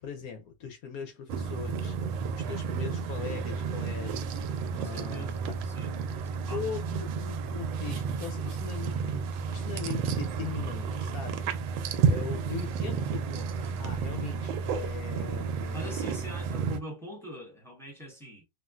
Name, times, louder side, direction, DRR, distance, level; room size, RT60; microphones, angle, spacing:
voice 1, 0.0-4.3 4.7-5.6 6.5-11.5 12.1-16.0, left 7 dB, 70° left, 0.8 m, -40 dB
sound 1, 1.3-16.8, right 6 dB, 85° right, 1.4 m, -31 dB
voice 2, 4.7-5.9 6.3-6.6 15.7-18.4, equal, ahead, 0.7 m, -43 dB
3.4 x 2.4 x 2.3 m
omnidirectional pair, 2.1 m